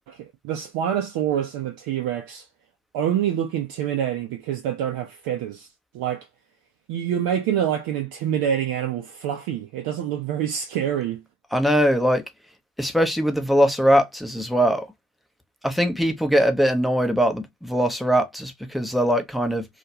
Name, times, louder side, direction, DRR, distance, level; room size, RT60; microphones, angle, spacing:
voice 1, 0.1-2.5 2.9-5.7 5.9-6.3 6.9-11.2, right 10 dB, 55° right, 0.5 m, -26 dB
voice 2, 11.5-12.2 12.8-14.9 15.6-19.6, equal, ahead, 0.6 m, -21 dB
2.4 x 2.2 x 2.8 m
hypercardioid pair, 55°, 45 cm